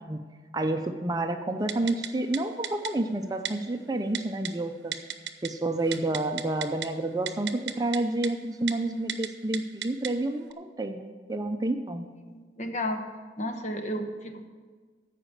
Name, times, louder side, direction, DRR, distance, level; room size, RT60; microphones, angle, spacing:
voice 1, 0.5-5.0 5.4-7.5 7.8-12.1, right 2 dB, 20° right, 7 dB, 0.5 m, -29 dB
Typing, 1.7-2.1 2.3-2.4 2.6-2.9 3.4-3.5 4.1-4.5 4.9-5.5 5.8-6.9 7.3-8.0 8.2-8.3 8.7-8.8 9.1-9.3 9.5-10.1 10.5-10.6, right 9 dB, 70° right, 0.7 m, -33 dB
voice 2, 12.2-13.0 13.4-14.5, left 1 dB, 40° left, 6 dB, 1.0 m, -33 dB
14.0 x 5.0 x 7.5 m, 1.5 s
head